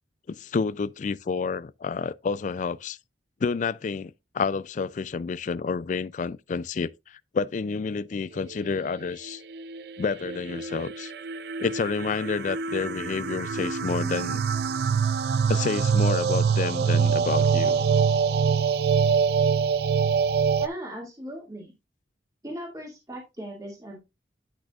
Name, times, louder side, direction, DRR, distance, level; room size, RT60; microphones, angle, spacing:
voice 1, 0.3-3.0 3.4-9.4 10.0-11.1 11.6-14.5 15.5-17.8, left 5 dB, 45° left, 0.3 m, -29 dB
sound 1, 9.3-20.7, right 6 dB, 65° right, 0.4 m, -25 dB
voice 2, 20.6-21.7 22.4-24.0, equal, 20° right, 2.3 m, -38 dB
10.5 x 6.1 x 2.4 m
head